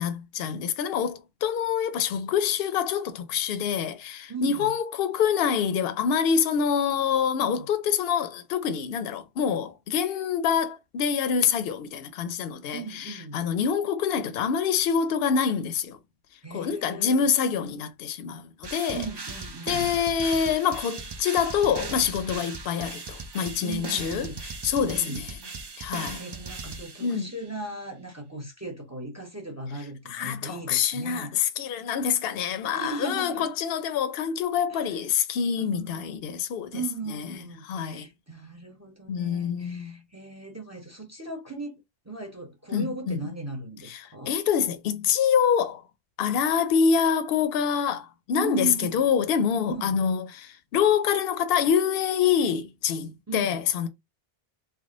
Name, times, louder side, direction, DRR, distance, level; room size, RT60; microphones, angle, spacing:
voice 1, 0.0-16.0 16.5-19.0 19.7-24.3 24.6-25.4 25.8-26.2 27.0-27.3 30.1-36.8 37.1-37.4 37.6-38.1 39.1-40.0 42.7-43.2 43.8-45.8 46.2-53.9, left 7 dB, 70° left, 0.8 m, -26 dB
voice 2, 4.3-4.7 7.4-7.7 12.7-13.4 16.4-17.3 18.9-19.9 23.6-24.4 24.8-25.2 25.6-31.3 32.7-33.5 34.7-35.0 35.6-36.1 36.7-44.3 48.4-49.1 49.7-50.0 53.3-53.6, right 3 dB, 15° right, 0.8 m, -37 dB
sound 1, 18.6-27.4, right 4 dB, 40° right, 0.4 m, -38 dB
3.5 x 2.1 x 3.7 m
omnidirectional pair, 1.0 m